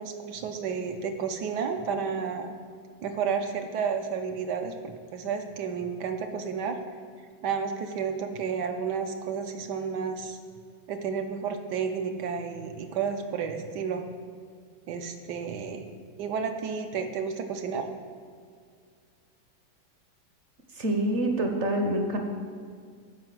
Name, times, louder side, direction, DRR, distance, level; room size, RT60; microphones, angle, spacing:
voice 1, 0.0-2.5 3.0-6.8 7.4-10.4 10.9-14.1 14.9-15.8 16.2-17.9, right 6 dB, 70° right, 6 dB, 1.3 m, -31 dB
voice 2, 20.7-22.2, right 1 dB, 45° right, 3 dB, 1.0 m, -26 dB
10.5 x 5.3 x 7.6 m, 2.1 s
omnidirectional pair, 2.1 m